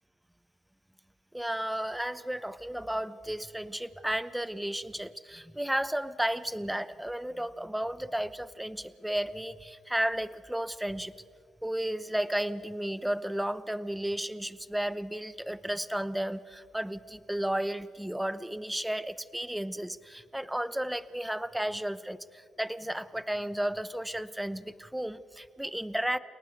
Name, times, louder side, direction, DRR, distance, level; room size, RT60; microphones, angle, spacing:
voice 1, 1.3-11.1 11.6-26.2, right 1 dB, 5° right, 16 dB, 0.8 m, -33 dB
30.0 x 18.5 x 4.7 m, 2.1 s
cardioid pair, 90°, 0 cm